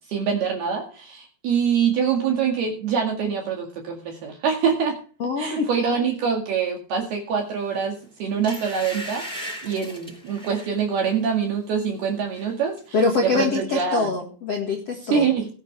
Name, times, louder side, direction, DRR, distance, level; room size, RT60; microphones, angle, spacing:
voice 1, 0.1-5.0 5.4-7.9 8.2-13.0 13.2-14.1 15.1-15.5, right 6 dB, 60° right, 0 dB, 3.7 m, -24 dB
voice 2, 5.2-5.7 12.9-15.3, left 4 dB, 50° left, 0 dB, 2.0 m, -24 dB
sound 1, 7.7-7.9 8.4-10.8 11.2-11.4 11.8-12.5 12.8-12.9, equal, ahead, 6.4 m, -37 dB
19.0 x 8.6 x 3.4 m, 0.40 s
omnidirectional pair, 5.6 m